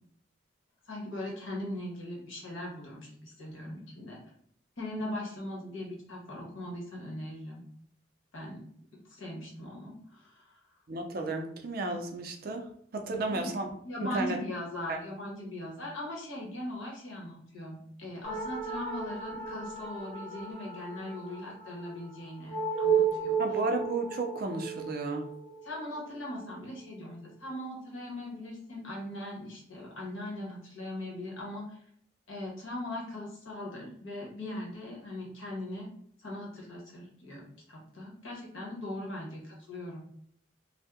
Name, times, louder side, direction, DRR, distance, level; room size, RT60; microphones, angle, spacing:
voice 1, 0.9-4.2 4.8-7.6 8.3-8.7 8.9-10.6 13.3-13.5 13.8-23.4 25.6-31.8 32.3-35.9 36.2-37.4 37.7-40.0, left 1 dB, 80° left, -3 dB, 1.1 m, -40 dB
voice 2, 10.9-12.7 12.9-13.7 14.0-14.4 14.9-15.0 23.4-25.3, right 2 dB, 45° right, 3 dB, 0.4 m, -33 dB
sound 1, 18.2-27.1, right 6 dB, 30° left, 0.8 m, -34 dB
2.6 x 2.1 x 3.5 m, 0.64 s
head